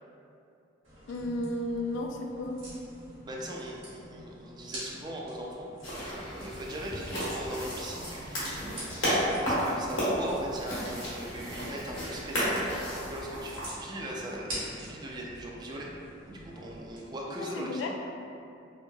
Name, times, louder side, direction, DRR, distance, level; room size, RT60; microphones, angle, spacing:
sound 1, 0.8-17.0, equal, 85° right, 1.2 m, -47 dB
voice 1, 1.1-2.6 17.4-17.9, left 1 dB, 70° left, 2 dB, 0.3 m, -33 dB
voice 2, 3.3-15.9 16.3-17.9, right 1 dB, 25° right, -2 dB, 0.3 m, -40 dB
sound 2, 5.8-13.7, equal, 90° left, 1.2 m, -32 dB
3.0 x 2.6 x 2.2 m, 2.6 s
head